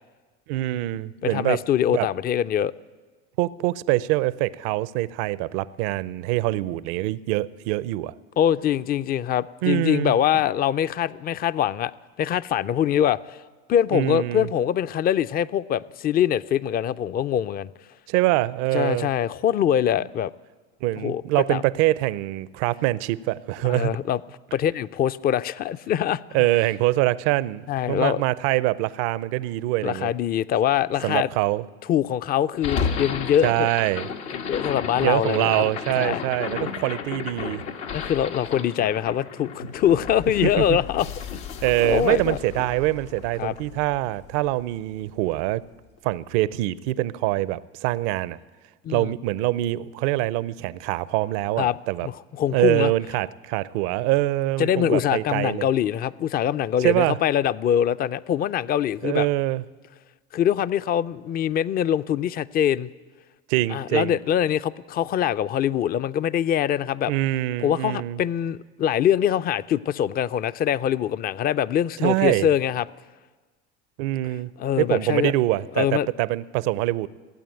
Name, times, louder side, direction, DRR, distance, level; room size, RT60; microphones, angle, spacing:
voice 1, 0.5-1.6 1.9-2.1 3.4-8.1 9.6-10.1 13.9-14.5 18.1-19.1 20.8-23.9 26.3-27.6 27.9-30.1 31.0-31.6 33.4-34.1 34.9-37.6 40.4-40.8 41.6-45.6 46.0-48.4 48.9-52.1 52.5-55.7 56.8-57.2 59.0-59.6 63.5-64.2 67.1-68.2 72.0-72.5 74.0-74.5 74.8-77.1, right 17 dB, 70° right, 20 dB, 0.6 m, -24 dB
voice 2, 1.2-2.7 8.4-11.9 12.2-13.4 13.7-17.7 18.7-20.3 21.0-21.2 21.5-21.6 23.7-24.2 24.5-26.2 27.7-28.2 29.8-31.3 31.9-33.7 34.3-35.6 36.0-36.2 36.6-36.7 37.9-41.1 41.3-41.4 41.8-42.4 43.4-43.5 48.8-49.1 51.6-51.8 52.0-52.9 54.6-59.3 60.3-62.9 63.7-67.1 67.6-72.9 74.6-75.3 75.8-76.1, left 10 dB, 30° left, 16 dB, 0.4 m, -23 dB
sound 1, 32.6-44.8, left 6 dB, 85° left, 1.3 m, -33 dB
16.0 x 8.7 x 9.0 m, 1.3 s
hypercardioid pair, 85°, 34 cm